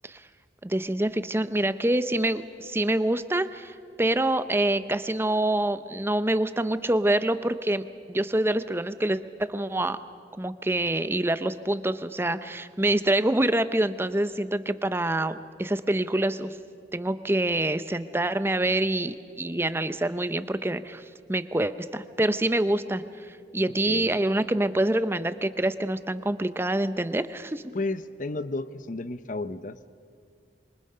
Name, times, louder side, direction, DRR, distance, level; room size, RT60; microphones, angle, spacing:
voice 1, 0.6-10.0 10.4-16.5 16.9-21.0 21.3-27.7, right 1 dB, 15° right, 12 dB, 0.6 m, -26 dB
voice 2, 23.8-24.2 27.7-29.9, left 2 dB, 45° left, 14 dB, 0.7 m, -32 dB
26.5 x 24.5 x 5.6 m, 2.3 s
head